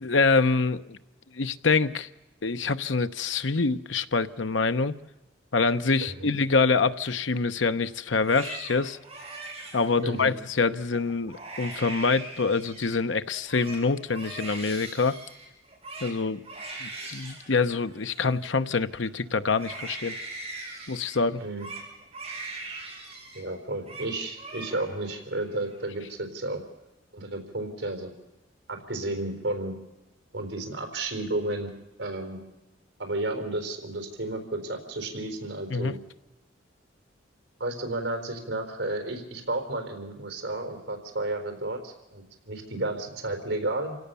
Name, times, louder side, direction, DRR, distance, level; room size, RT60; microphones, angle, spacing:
voice 1, 0.0-1.0 1.3-2.1 2.4-5.0 5.5-9.0 9.7-15.2 16.0-16.4 16.8-20.2 20.9-21.4 35.7-35.9, left 4 dB, 80° left, 11 dB, 0.9 m, -25 dB
voice 2, 6.0-6.3 10.0-10.3 21.4-21.7 23.3-26.6 27.1-28.1 28.7-29.7 30.3-31.7 32.0-32.4 33.0-36.0 37.6-44.0, right 2 dB, 75° right, 6 dB, 4.2 m, -32 dB
Crying sobbing, 8.1-10.4 10.9-11.0 11.3-13.0 13.3-19.1 19.5-23.4 23.7-24.1 24.4-25.1 25.4-26.1, right 3 dB, 30° right, 7.1 m, -41 dB
28.0 x 17.5 x 6.9 m, 0.99 s
head